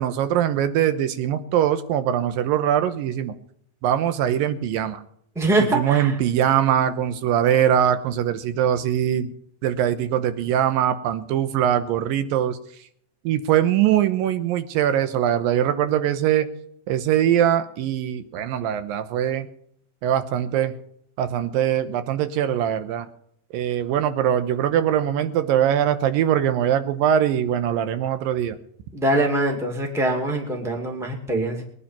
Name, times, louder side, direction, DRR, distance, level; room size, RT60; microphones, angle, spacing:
voice 1, 0.0-3.4 3.8-5.0 5.7-9.3 9.6-12.6 13.2-16.5 16.9-19.5 20.0-20.8 21.2-23.1 23.5-28.6, right 10 dB, 90° right, 11 dB, 2.7 m, -22 dB
voice 2, 5.3-6.1 28.9-31.6, right 1 dB, ahead, 1 dB, 1.6 m, -23 dB
20.5 x 10.0 x 5.8 m, 0.67 s
omnidirectional pair, 4.0 m